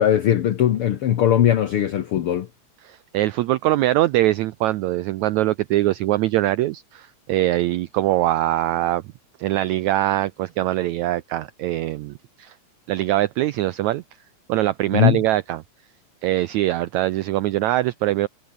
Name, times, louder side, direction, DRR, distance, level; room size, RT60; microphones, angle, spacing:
voice 1, 0.0-2.5 14.9-15.2, left 10 dB, 80° left, 1.2 m, -19 dB
voice 2, 2.8-9.0 9.4-12.5 12.9-14.0 14.5-15.6 16.2-18.3, right 15 dB, 90° right, 1.6 m, -22 dB
omnidirectional pair, 4.0 m